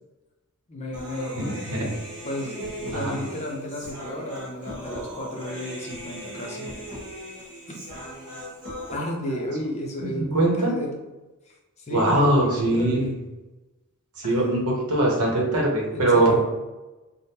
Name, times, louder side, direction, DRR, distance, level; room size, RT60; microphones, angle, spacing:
voice 1, 0.7-1.6 2.2-6.7 7.7-7.8 8.9-11.0 11.5-13.1 14.2-14.7 15.9-16.4, equal, 30° left, -1 dB, 0.5 m, -33 dB
Human voice, 0.9-8.9, equal, 55° right, 1.2 m, -38 dB
voice 2, 1.3-1.9 2.9-3.2 10.0-10.7 11.9-13.2 14.2-16.4, right 1 dB, 80° right, -1 dB, 0.8 m, -22 dB
3.4 x 2.1 x 2.8 m, 1.1 s
head